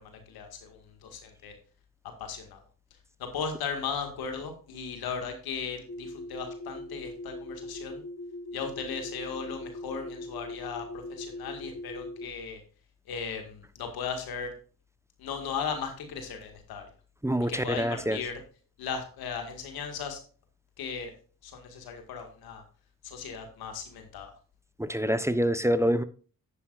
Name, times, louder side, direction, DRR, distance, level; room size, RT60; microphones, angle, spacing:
voice 1, 0.0-1.6 2.2-2.6 3.2-8.0 8.5-12.6 13.1-14.5 15.2-16.9 17.4-18.4 18.8-20.2 20.8-21.1 21.4-22.6 23.0-24.3, left 6 dB, 90° left, 5 dB, 1.9 m, -37 dB
sound 1, 5.9-12.3, left 1 dB, 40° left, 3.4 m, -41 dB
voice 2, 17.2-18.2 24.8-26.0, equal, 10° right, 13 dB, 0.9 m, -26 dB
10.0 x 9.6 x 2.5 m, 0.39 s
supercardioid pair, 40°, 36 cm